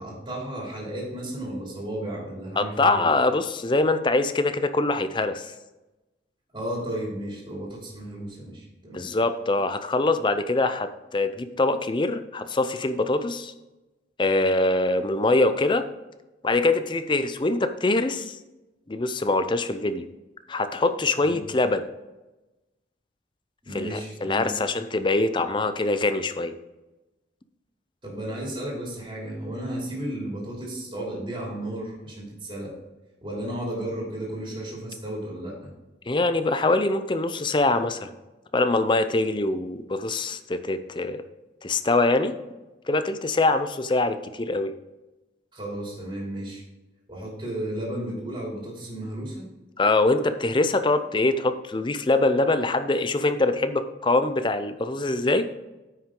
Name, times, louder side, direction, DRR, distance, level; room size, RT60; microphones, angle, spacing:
voice 1, 0.0-3.1 6.5-9.1 21.2-21.4 23.6-24.5 28.0-32.7 33.2-35.7 45.5-46.6 47.1-49.4, right 1 dB, 25° right, -4 dB, 2.9 m, -34 dB
voice 2, 2.6-5.5 8.9-13.5 14.2-15.8 16.4-18.4 18.9-20.1 20.5-21.8 23.7-26.5 36.1-38.1 38.5-41.2 41.6-42.4 42.9-44.7 49.8-55.5, left 2 dB, 25° left, 10 dB, 0.5 m, -23 dB
9.4 x 6.0 x 3.7 m, 1.1 s
head